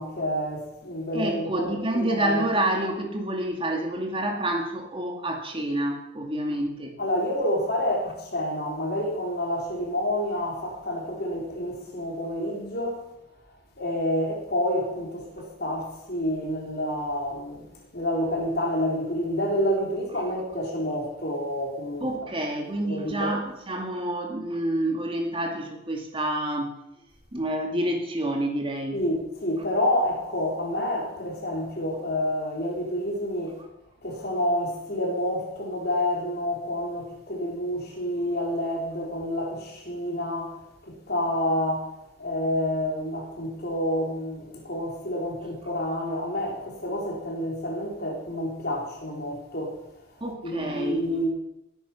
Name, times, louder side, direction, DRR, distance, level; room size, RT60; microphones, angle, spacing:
voice 1, 0.0-2.4 7.0-13.0 13.8-17.7 17.9-22.3 22.8-23.4 28.9-33.6 34.0-40.6 40.8-49.8 50.4-51.3, left 1 dB, 45° left, 3.9 m, -28 dB
voice 2, 1.1-6.9 22.0-26.8 27.3-29.0 50.2-51.0, right 1 dB, 25° right, 2.1 m, -28 dB
20.5 x 9.3 x 6.0 m
head